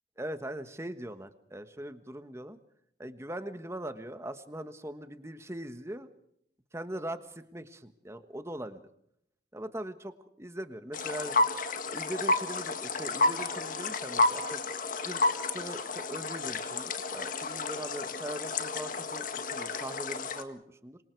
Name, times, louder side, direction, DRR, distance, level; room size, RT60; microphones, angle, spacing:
voice 1, 0.2-2.6 3.0-6.1 6.7-7.2 7.5-8.8 9.5-11.4 11.9-14.6 15.0-21.0, right 1 dB, 15° right, 10 dB, 1.3 m, -41 dB
sound 1, 10.9-20.4, left 3 dB, 45° left, 1.7 m, -31 dB
27.0 x 24.5 x 4.7 m, 0.73 s
head